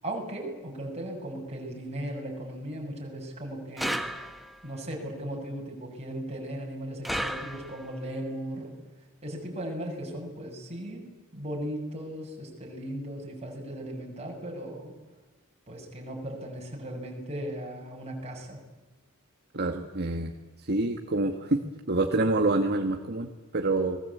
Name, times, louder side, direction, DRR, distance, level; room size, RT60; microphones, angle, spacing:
voice 1, 0.0-4.0 4.6-8.8 9.2-11.0 11.3-14.9 15.7-18.6, right 1 dB, 30° right, 0 dB, 7.0 m, -37 dB
sound 1, 3.8-4.7 7.0-8.0, equal, ahead, 1.4 m, -33 dB
voice 2, 19.5-20.3 20.6-24.0, right 2 dB, 50° right, 5 dB, 1.7 m, -27 dB
30.0 x 21.0 x 8.6 m, 1.2 s
head